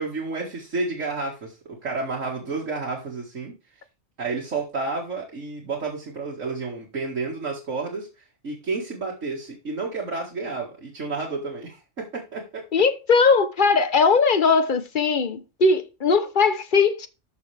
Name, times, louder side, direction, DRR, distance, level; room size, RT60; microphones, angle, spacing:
voice 1, 0.0-3.5 4.2-12.6, right 3 dB, 85° right, 2.4 m, -31 dB
voice 2, 12.7-17.1, left 4 dB, 45° left, 1.1 m, -19 dB
13.5 x 5.8 x 3.4 m
omnidirectional pair, 1.3 m